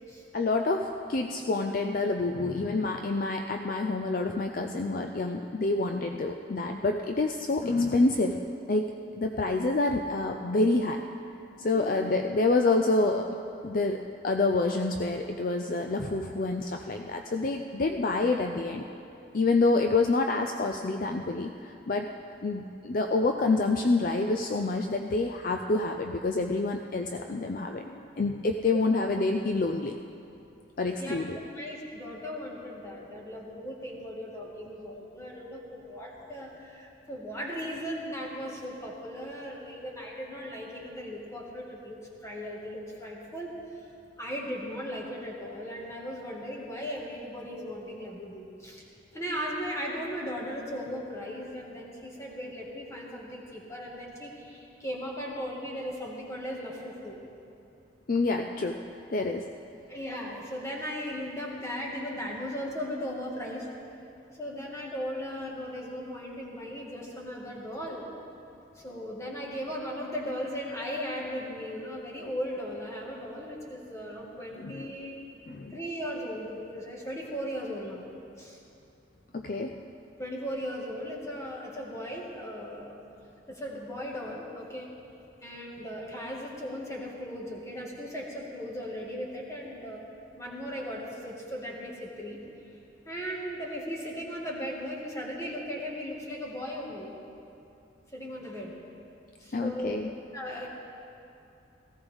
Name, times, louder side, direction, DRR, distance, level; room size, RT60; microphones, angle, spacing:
voice 1, 0.3-8.4 8.7-8.9 9.2-11.0 11.6-13.3 13.6-18.9 19.3-22.1 22.4-30.0 30.8-31.4 58.1-58.8 59.1-59.5 74.6-74.9 75.5-75.7 79.3-79.8 99.5-100.1, left 3 dB, 45° left, 4 dB, 0.5 m, -27 dB
voice 2, 18.2-18.6 28.7-28.8 31.0-43.6 44.2-48.8 49.1-57.2 59.9-63.7 64.3-68.0 68.7-75.1 75.7-78.0 78.4-78.6 80.2-83.0 83.5-84.9 85.4-90.0 90.3-92.4 93.0-97.1 98.1-98.7 99.4-100.7, equal, 15° left, -3 dB, 1.8 m, -37 dB
18.0 x 15.5 x 3.6 m, 2.7 s
head